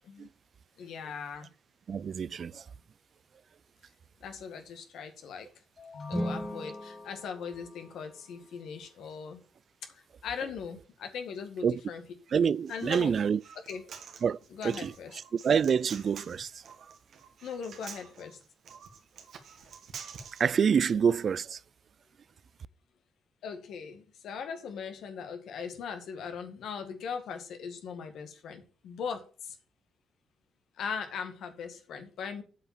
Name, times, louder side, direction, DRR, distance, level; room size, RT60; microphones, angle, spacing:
voice 1, 0.8-1.5 4.2-5.5 5.9-9.4 9.9-12.0 12.7-13.2 13.6-13.8 14.5-15.2 17.4-18.4 23.4-29.6 30.8-32.4, left 6 dB, 75° left, 1.8 m, -39 dB
voice 2, 1.9-2.6 11.6-11.8 12.3-13.4 14.2-14.4 14.6-14.9 15.3-16.5 20.4-21.6, right 7 dB, 50° right, 0.3 m, -26 dB
sound 1, 5.8-8.5, left 4 dB, 45° left, 3.8 m, -50 dB
sound 2, 6.0-8.3, equal, ahead, 1.1 m, -37 dB
Human voice, 12.4-20.4, right 6 dB, 65° right, 1.7 m, -48 dB
8.3 x 5.0 x 7.2 m
cardioid pair, 90°, 0 cm